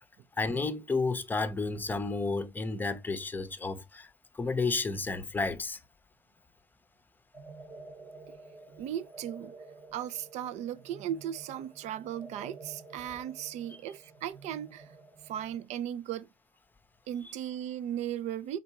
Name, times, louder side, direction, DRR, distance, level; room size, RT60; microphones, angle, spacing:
voice 1, 0.4-5.8, left 3 dB, 15° left, 0.7 m, -32 dB
sound 1, 7.3-15.6, right 3 dB, 25° right, 1.0 m, -51 dB
voice 2, 8.8-9.5 9.9-14.9 15.2-16.3 17.1-18.6, right 10 dB, 65° right, 0.5 m, -37 dB
4.3 x 4.0 x 2.8 m
cardioid pair, 120°, 12 cm